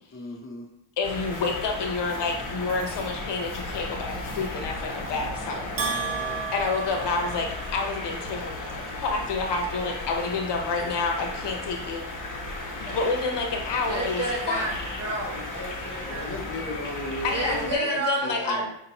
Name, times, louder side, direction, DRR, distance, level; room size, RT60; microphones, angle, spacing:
voice 1, 0.1-0.7 6.1-6.5 16.1-18.7, left 2 dB, 30° left, 0 dB, 0.8 m, -37 dB
voice 2, 1.0-5.7 6.5-12.0 12.9-14.7 17.2-18.6, left 4 dB, 70° left, 2 dB, 0.9 m, -29 dB
sound 1, 1.0-17.7, left 2 dB, 45° left, 1.2 m, -35 dB
Bell, 5.8-7.9, right 5 dB, 90° right, 1.0 m, -32 dB
voice 3, 13.9-16.4 17.3-18.7, right 2 dB, 35° right, -3 dB, 1.4 m, -31 dB
5.5 x 2.8 x 2.9 m, 0.77 s
cardioid pair, 110°, 43 cm